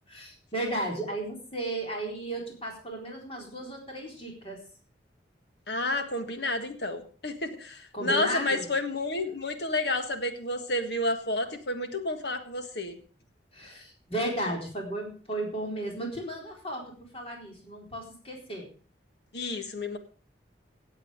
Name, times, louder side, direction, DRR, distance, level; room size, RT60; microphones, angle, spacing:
voice 1, 0.1-4.6 7.9-8.7 13.5-18.7, right 1 dB, 30° left, 0 dB, 4.1 m, -34 dB
voice 2, 5.7-13.0 19.3-20.0, left 2 dB, 65° left, 7 dB, 1.7 m, -30 dB
17.0 x 8.2 x 5.1 m, 0.40 s
head